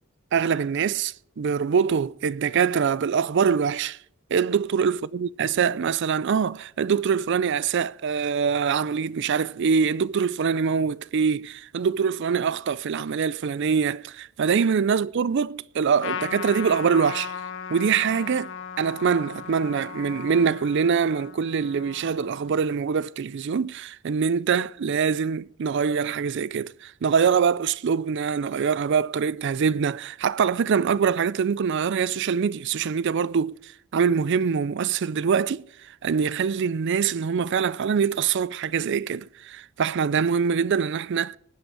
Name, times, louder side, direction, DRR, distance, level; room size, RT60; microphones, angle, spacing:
voice 1, 0.3-4.0 4.3-17.3 17.7-18.5 18.8-35.6 36.0-41.4, right 6 dB, 55° right, 0.4 m, -24 dB
Trumpet, 16.0-22.7, left 7 dB, 60° left, 1.0 m, -37 dB
20.0 x 7.9 x 4.8 m
head